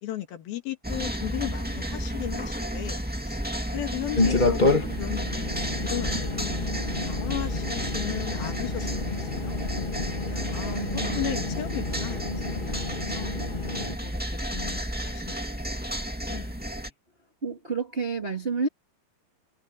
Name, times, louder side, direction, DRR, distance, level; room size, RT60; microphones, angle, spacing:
voice 1, 0.0-3.0 3.3-3.4 3.7-8.9 9.2-9.6 10.2-12.9 13.1-13.3 14.0-16.0 16.3-16.9, left 13 dB, 75° left, 3.8 m, -36 dB
sound 1, 0.8-16.9, equal, 5° right, 0.9 m, -32 dB
sound 2, 4.1-14.0, left 3 dB, 25° left, 0.9 m, -29 dB
voice 2, 10.6-11.4 17.4-18.7, right 4 dB, 25° right, 1.3 m, -30 dB
omnidirectional pair, 4.3 m